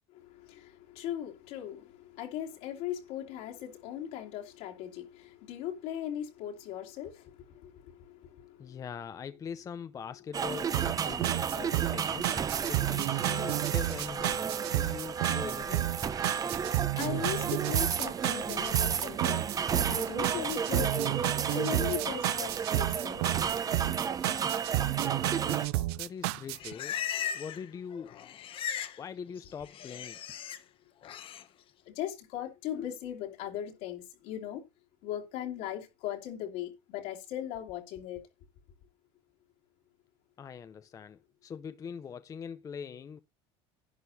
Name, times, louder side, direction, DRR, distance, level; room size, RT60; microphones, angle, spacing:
voice 1, 0.1-8.8 16.7-19.4 19.7-23.3 31.9-34.6 35.0-38.2, left 11 dB, 75° left, 2.8 m, -39 dB
voice 2, 8.6-11.3 11.5-12.4 12.7-15.9 25.5-27.0 27.3-28.1 29.0-30.2 40.4-43.2, left 7 dB, 25° left, 0.5 m, -42 dB
sound 1, 10.3-25.7, right 7 dB, 30° right, 0.7 m, -32 dB
sound 2, 10.7-26.7, right 18 dB, 90° right, 0.4 m, -32 dB
Livestock farm animals working animals, 26.2-27.7 27.9-29.0 29.3-30.6 31.0-31.4, left 8 dB, 45° left, 0.9 m, -37 dB
11.0 x 11.0 x 2.7 m
cardioid pair, 125°, 13 cm